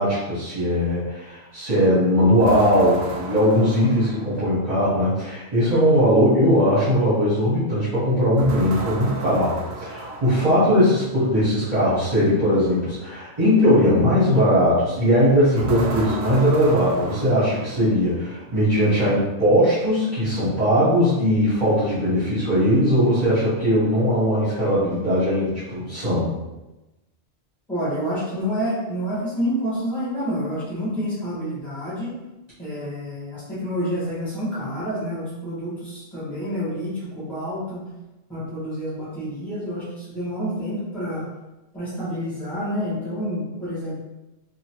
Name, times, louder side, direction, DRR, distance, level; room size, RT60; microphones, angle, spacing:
voice 1, 0.0-26.4, equal, 35° right, -13 dB, 1.1 m, -19 dB
sound 1, 2.4-4.7 8.4-10.9 15.6-18.2, right 3 dB, 70° right, 0.8 m, -34 dB
voice 2, 27.7-32.1 32.6-37.8 38.3-41.2 41.7-44.0, equal, ahead, -12 dB, 1.2 m, -28 dB
2.8 x 2.4 x 2.8 m, 1.0 s
omnidirectional pair, 1.2 m